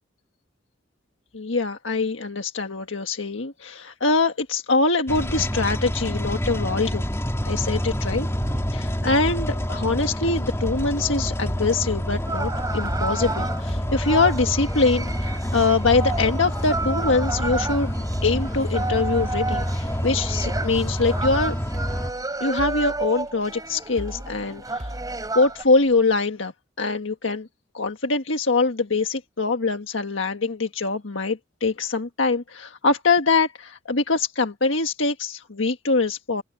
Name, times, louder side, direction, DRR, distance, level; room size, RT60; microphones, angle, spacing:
voice 1, 1.3-7.0 7.4-8.3 8.7-17.9 18.2-21.5 22.4-24.9 25.3-26.5 26.8-27.5 27.7-36.4, left 3 dB, 80° left, 1.6 m, -23 dB
sound 1, 5.1-22.1, equal, 15° left, 2.9 m, -27 dB
sound 2, 8.4-26.2, equal, 40° right, 6.3 m, -39 dB
sound 3, 12.3-25.6, right 3 dB, 20° right, 5.6 m, -32 dB
open air
head